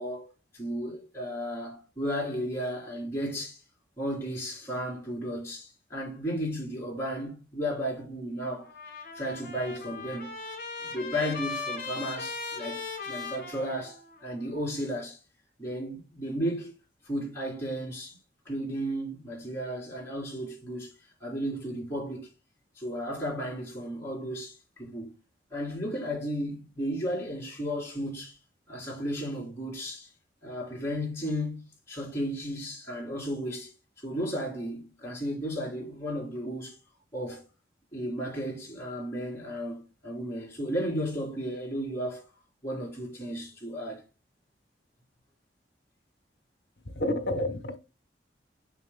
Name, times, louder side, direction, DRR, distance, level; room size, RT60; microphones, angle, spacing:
voice 1, 0.0-3.6 4.0-8.7 9.1-10.4 10.8-15.2 15.6-16.7 17.0-18.2 18.5-20.9 21.2-22.3 22.8-25.1 25.5-28.4 28.7-30.1 30.4-31.6 31.9-36.8 37.1-37.5 37.9-42.2 42.6-44.0, equal, 15° left, 3.4 m, -34 dB
Trumpet, 8.7-14.3, left 4 dB, 50° left, 2.1 m, -38 dB
voice 2, 46.8-47.8, left 1 dB, 70° left, 0.9 m, -30 dB
7.2 x 6.0 x 2.2 m
head